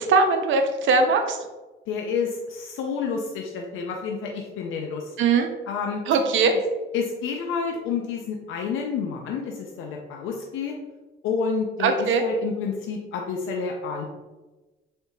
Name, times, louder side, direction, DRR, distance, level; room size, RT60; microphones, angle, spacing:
voice 1, 0.0-1.4 5.2-5.5 6.1-6.5 11.8-12.2, right 4 dB, 75° right, 6 dB, 0.6 m, -20 dB
voice 2, 1.9-5.1 5.7-6.0 6.9-10.8 11.2-14.1, left 5 dB, 85° left, 1 dB, 0.5 m, -29 dB
3.9 x 3.5 x 2.7 m, 1.2 s
cardioid pair, 90°, 20 cm